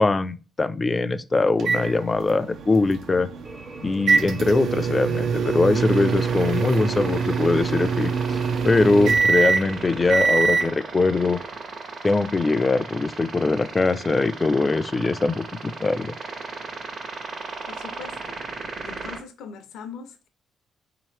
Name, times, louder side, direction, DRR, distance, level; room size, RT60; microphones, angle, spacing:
voice 1, 0.0-3.3 3.8-8.4 8.6-11.4 12.0-16.1, left 3 dB, 25° left, 0.3 m, -22 dB
sound 1, 1.6-10.7, right 5 dB, 70° right, 0.4 m, -24 dB
sound 2, 3.4-10.3, right 1 dB, 25° right, 0.7 m, -42 dB
sound 3, 5.8-19.2, right 3 dB, 50° right, 1.0 m, -37 dB
voice 2, 17.7-18.4 18.8-20.3, left 6 dB, 85° left, 0.5 m, -41 dB
3.7 x 2.9 x 3.1 m
cardioid pair, 90°, 0 cm